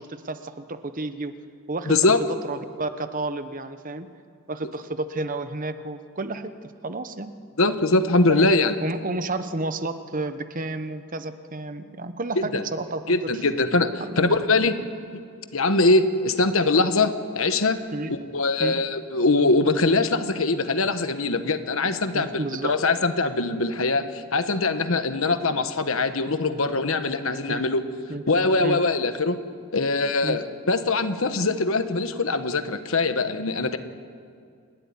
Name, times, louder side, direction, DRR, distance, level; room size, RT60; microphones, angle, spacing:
voice 1, 0.0-1.3 1.7-1.9 2.4-4.1 4.5-7.3 8.3-8.5 8.8-13.4 14.0-14.4 14.8-14.9 17.9-18.1 18.6-18.8 22.1-22.8 27.5-27.6 28.1-28.2 28.6-28.8 30.2-30.4, right 2 dB, 35° right, 10 dB, 1.0 m, -31 dB
voice 2, 1.9-2.2 7.6-8.8 12.4-12.6 13.1-14.8 15.1-15.2 15.5-17.8 18.1-27.8 28.3-29.4 29.7-33.8, left 3 dB, 65° left, 9 dB, 1.3 m, -22 dB
29.0 x 13.0 x 9.8 m, 2.3 s
head